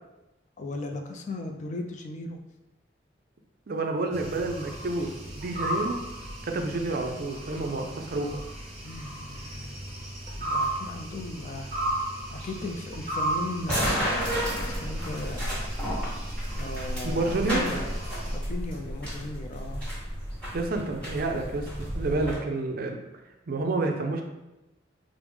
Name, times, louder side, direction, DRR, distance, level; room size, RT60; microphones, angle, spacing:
voice 1, 0.6-2.4 8.8-10.1 10.4-11.9 12.3-14.2 14.6-15.6 16.5-18.0 18.2-19.9, left 2 dB, 40° left, 4 dB, 0.4 m, -37 dB
voice 2, 3.7-6.0 6.4-8.4 17.0-17.6 20.5-23.0 23.5-24.2, right 2 dB, 55° right, 4 dB, 0.5 m, -29 dB
sound 1, 4.1-18.4, right 1 dB, 35° right, 0.9 m, -35 dB
sound 2, 13.7-22.4, equal, 5° left, 1.4 m, -32 dB
4.7 x 2.0 x 3.4 m, 0.99 s
head